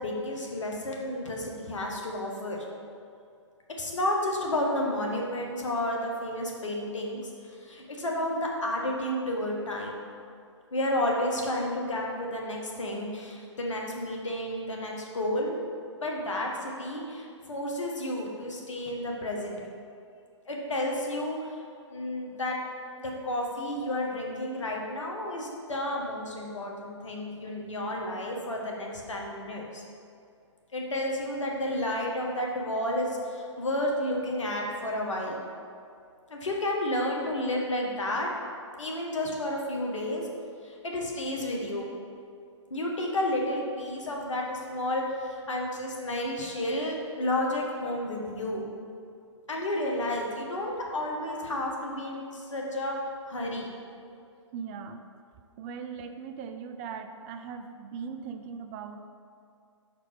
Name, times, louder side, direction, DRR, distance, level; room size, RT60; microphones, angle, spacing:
voice 1, 0.0-2.6 3.8-7.3 7.6-10.0 10.7-15.6 16.0-19.6 20.5-21.5 21.9-22.6 22.9-29.8 30.7-35.4 36.3-38.3 38.8-40.3 40.6-41.9 42.7-48.7 49.5-52.9 53.3-53.7, left 1 dB, 75° left, -1 dB, 1.3 m, -31 dB
voice 2, 54.5-55.0 55.6-59.0, right 6 dB, 25° right, 7 dB, 0.4 m, -39 dB
6.0 x 4.4 x 5.1 m, 2.4 s
hypercardioid pair, 130°, 16 cm